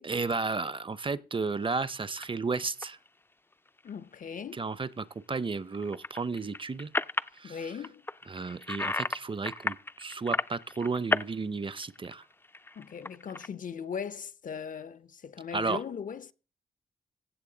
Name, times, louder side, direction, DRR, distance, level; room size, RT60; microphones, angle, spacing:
voice 1, 0.0-3.0 4.5-6.9 7.4-7.7 8.3-12.2 15.5-15.8, right 4 dB, 35° right, 0.7 m, -33 dB
sound 1, 2.1-2.3 2.8-3.1 3.5-3.9 5.7-7.4 7.8-9.2 9.4-11.3 11.6-13.5, left 2 dB, 15° left, 0.4 m, -33 dB
voice 2, 3.8-4.7 7.4-8.1 12.8-16.3, left 7 dB, 60° left, 0.7 m, -39 dB
15.5 x 6.9 x 3.9 m
cardioid pair, 60°, 16 cm